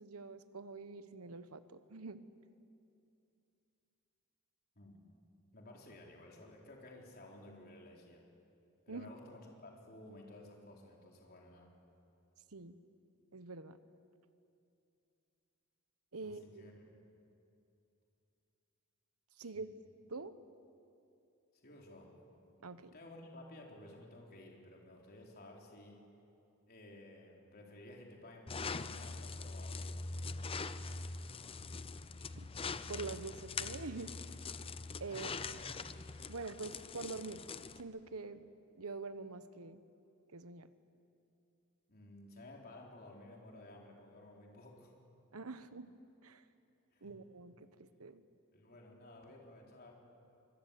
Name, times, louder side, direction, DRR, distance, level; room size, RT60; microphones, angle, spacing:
voice 1, 0.0-2.2 8.9-9.1 12.5-12.8 13.3-13.8 16.1-16.7 19.4-19.7 20.1-20.3 22.6-22.9 32.3-32.5 32.9-34.1 35.0-35.3 36.3-37.4 37.8-39.8 40.3-40.7 45.3-45.9 46.2-46.4 47.0-48.2, right 3 dB, 90° right, 12 dB, 1.1 m, -45 dB
voice 2, 5.5-8.2 8.9-11.7 16.2-16.8 19.4-19.6 21.6-22.1 22.9-26.0 26.7-30.0 35.1-35.7 36.3-36.4 41.9-44.9 46.9-47.2 48.5-49.9, left 1 dB, 45° left, -1 dB, 4.0 m, -55 dB
sound 1, 28.5-37.8, left 4 dB, 25° left, 0.7 m, -43 dB
26.0 x 21.0 x 8.5 m, 2.7 s
head